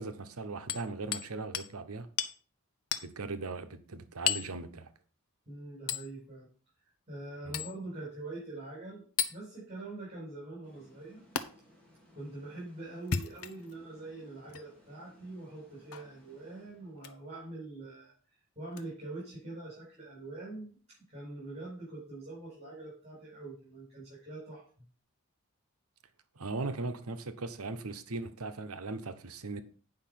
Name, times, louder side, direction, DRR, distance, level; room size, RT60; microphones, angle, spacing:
voice 1, 0.0-2.1 3.0-4.9 7.4-7.6 26.4-29.6, right 3 dB, 80° right, 1.0 m, -39 dB
Hammer, 0.7-1.3 1.5-1.7 2.2-2.4 2.9-3.1 4.3-4.5 5.9-6.1 7.5-7.7 9.2-9.4 11.4-11.5 13.0-13.7 14.5-14.6 15.9-16.1 17.0-17.2 18.7-18.8, left 8 dB, 75° left, 0.8 m, -33 dB
voice 2, 5.5-6.5 7.1-11.2 12.1-18.1 18.6-20.8 21.1-24.6, right 2 dB, 30° right, 5.3 m, -44 dB
sound 1, 10.6-17.2, equal, 5° left, 2.8 m, -62 dB
8.9 x 5.5 x 5.8 m
head